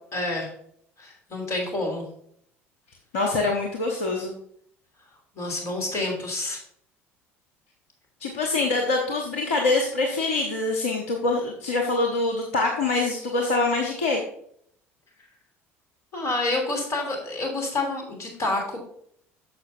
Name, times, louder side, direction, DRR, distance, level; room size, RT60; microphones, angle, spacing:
voice 1, 0.1-0.5 1.0-2.0 5.3-6.6 16.1-18.8, left 2 dB, 45° left, 1 dB, 3.0 m, -28 dB
voice 2, 3.1-4.3 8.2-14.2, left 3 dB, 70° left, 1 dB, 1.0 m, -24 dB
9.6 x 6.7 x 2.6 m, 0.66 s
figure-of-eight pair, 60°, 7 cm